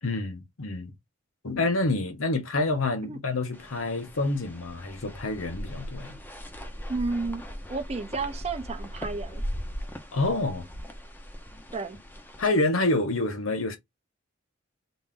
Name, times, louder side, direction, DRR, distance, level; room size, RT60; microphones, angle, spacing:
voice 1, 0.0-0.9 1.4-6.2 10.1-10.6 12.4-13.8, left 2 dB, 90° left, 1.0 m, -27 dB
sound 1, 3.5-12.5, equal, 10° left, 0.6 m, -39 dB
voice 2, 6.9-7.4 7.7-9.4 11.7-12.0, right 3 dB, 30° right, 0.6 m, -31 dB
4.0 x 2.5 x 3.7 m
head